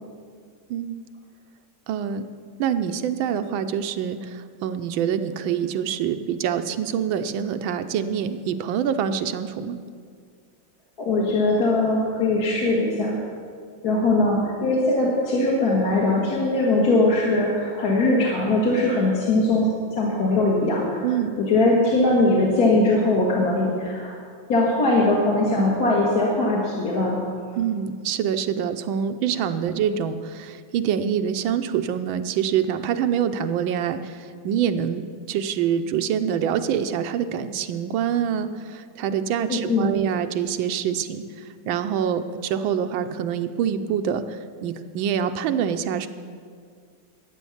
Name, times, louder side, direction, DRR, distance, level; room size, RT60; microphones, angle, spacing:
voice 1, 1.9-2.2 2.6-9.8 21.0-21.4 27.6-46.1, right 8 dB, 80° right, 9 dB, 1.4 m, -25 dB
voice 2, 11.0-13.2 13.8-24.2 24.5-27.6 39.5-39.9, left 2 dB, 50° left, -4 dB, 2.0 m, -21 dB
12.5 x 9.1 x 7.1 m, 2.1 s
omnidirectional pair, 2.2 m